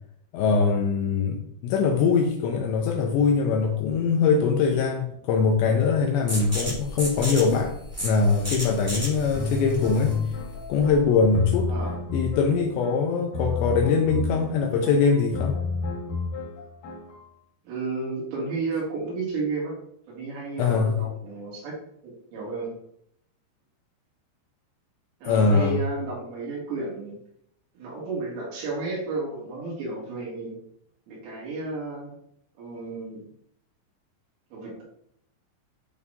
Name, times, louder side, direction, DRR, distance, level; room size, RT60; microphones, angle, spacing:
voice 1, 0.3-7.8 8.0-10.2 10.7-11.7 12.1-15.6 20.6-21.0 25.2-25.8, left 5 dB, 85° left, 2 dB, 2.6 m, -22 dB
sound 1, 6.3-11.8, equal, 15° right, 0.4 m, -34 dB
sound 2, 9.3-17.3, left 3 dB, 60° left, 2.3 m, -31 dB
voice 2, 17.6-19.7 20.1-21.7 22.0-22.7 25.2-27.2 27.7-30.6 31.1-32.1 32.6-33.2 34.5-34.8, right 3 dB, 90° right, -5 dB, 5.0 m, -32 dB
10.5 x 3.6 x 2.7 m, 0.70 s
omnidirectional pair, 5.6 m